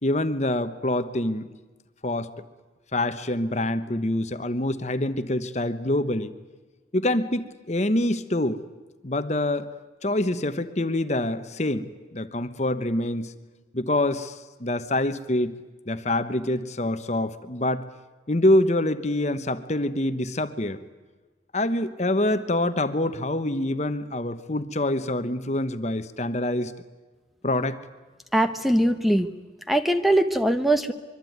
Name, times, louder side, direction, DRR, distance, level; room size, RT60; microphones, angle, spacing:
voice 1, 0.0-1.4 2.0-2.3 2.9-6.3 6.9-8.6 9.0-9.7 10.0-13.3 13.7-14.3 14.6-15.5 15.9-17.9 18.3-20.8 21.5-26.7 27.4-27.8, left 1 dB, 35° left, 11 dB, 1.1 m, -25 dB
voice 2, 28.3-29.3 29.7-30.9, right 1 dB, ahead, 8 dB, 1.0 m, -21 dB
24.5 x 23.5 x 9.4 m, 1.3 s
head